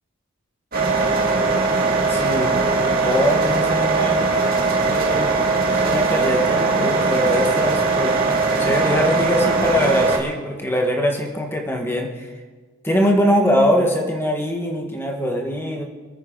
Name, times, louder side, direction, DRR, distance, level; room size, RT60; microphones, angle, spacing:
sound 1, 0.7-10.2, right 3 dB, 40° right, 2.3 m, -20 dB
voice 1, 2.1-4.3 4.8-5.3 5.8-8.2 8.6-12.3 12.8-15.8, equal, 10° left, 1 dB, 1.7 m, -22 dB
25.5 x 9.4 x 4.0 m, 1.4 s
head